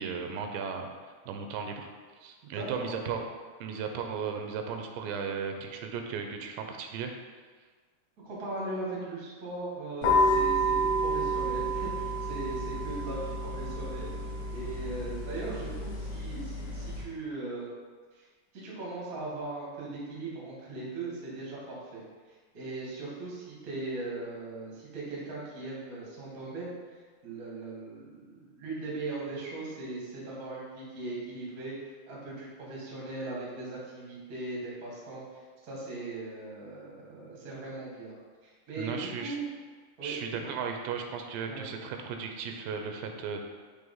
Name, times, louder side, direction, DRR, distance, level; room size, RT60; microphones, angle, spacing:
voice 1, 0.0-1.9 2.2-3.2 3.6-7.1 38.8-39.4 40.0-43.5, right 6 dB, 85° right, 4 dB, 2.7 m, -36 dB
voice 2, 2.4-2.9 8.2-14.1 14.5-17.7 18.1-18.3 18.5-22.0 22.3-26.7 27.2-31.8 32.1-38.1 38.4-39.4 40.0-40.5 41.5-41.6, right 2 dB, 55° right, -5 dB, 0.9 m, -39 dB
sound 1, 10.0-17.0, equal, 60° left, 2.4 m, -30 dB
6.8 x 3.3 x 5.4 m, 1.5 s
omnidirectional pair, 4.9 m